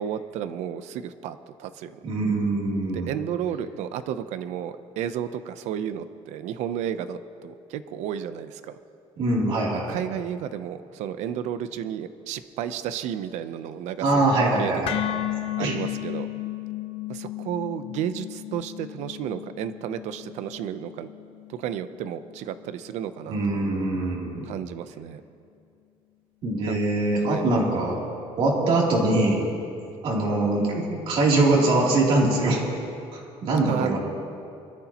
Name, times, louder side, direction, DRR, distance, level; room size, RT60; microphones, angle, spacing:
voice 1, 0.0-2.0 2.9-8.8 9.9-14.2 14.6-15.0 15.6-16.3 17.1-21.1 21.5-23.6 24.5-25.2 26.6-26.8 27.2-27.5 33.7-34.0, right 9 dB, 80° right, 12 dB, 0.7 m, -32 dB
voice 2, 2.0-3.1 9.2-10.0 14.0-15.0 15.6-15.8 23.3-24.4 26.4-28.0 28.4-29.4 30.0-32.6 33.1-34.0, right 2 dB, 50° right, -3 dB, 3.1 m, -23 dB
sound 1, 14.9-23.0, left 14 dB, 55° left, 0.7 m, -34 dB
23.0 x 13.0 x 3.0 m, 2.5 s
cardioid pair, 180°, 12 cm